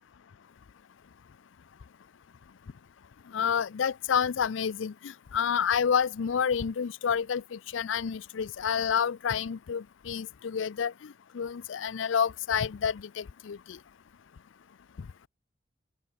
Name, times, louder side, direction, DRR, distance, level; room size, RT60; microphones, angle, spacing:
voice 1, 3.3-13.8, left 7 dB, 80° left, 0.5 m, -29 dB
open air
head